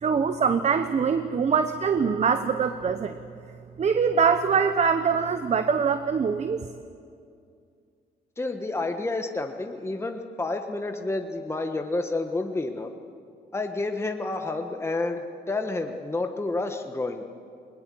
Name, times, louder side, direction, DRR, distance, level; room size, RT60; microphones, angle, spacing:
voice 1, 0.0-3.2 3.8-6.6, right 6 dB, 40° right, 10 dB, 0.9 m, -23 dB
voice 2, 8.4-12.9 13.5-17.2, left 2 dB, 15° left, 5 dB, 1.3 m, -29 dB
21.0 x 20.0 x 7.7 m, 2.4 s
cardioid pair, 95°, 17 cm